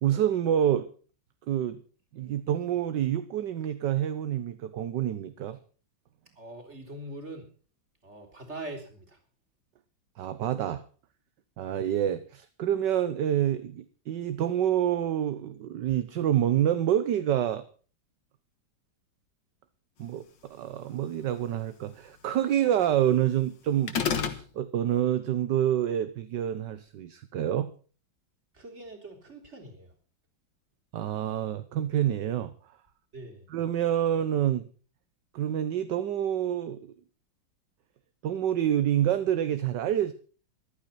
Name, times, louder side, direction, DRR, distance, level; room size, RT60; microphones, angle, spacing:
voice 1, 0.0-0.9 1.5-1.8 2.1-5.6 10.2-10.8 11.6-17.6 20.0-27.7 30.9-32.5 33.5-34.7 35.3-36.9 38.2-40.1, right 10 dB, 65° right, 1.5 m, -27 dB
voice 2, 6.4-7.5 8.0-9.2 11.6-11.7 28.5-29.9 33.1-33.5, right 2 dB, 35° right, 4.0 m, -42 dB
sound 1, 23.9-24.4, left 6 dB, 70° left, 2.1 m, -27 dB
15.0 x 12.0 x 5.7 m
omnidirectional pair, 2.1 m